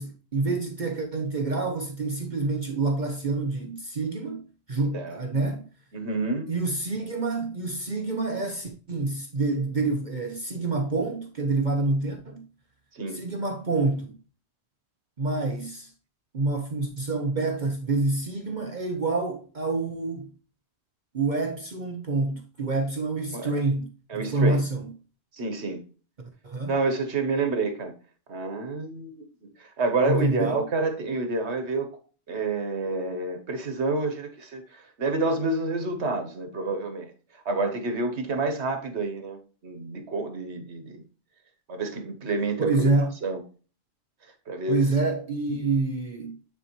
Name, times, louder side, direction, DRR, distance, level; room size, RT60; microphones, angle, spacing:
voice 1, 0.0-5.6 6.5-12.5 13.1-14.2 15.2-15.9 16.3-20.3 21.1-24.9 26.4-26.7 30.0-30.7 42.6-43.1 44.7-46.4, right 3 dB, 45° right, 1.0 m, -27 dB
voice 2, 5.9-6.5 12.9-13.2 23.3-23.5 24.1-24.6 25.3-25.8 26.7-27.9 28.3-29.3 29.6-32.0 32.3-37.1 37.4-41.0 41.7-42.9 43.2-43.4 44.5-44.8, right 3 dB, 80° right, 1.4 m, -28 dB
9.6 x 4.5 x 3.0 m
omnidirectional pair, 1.1 m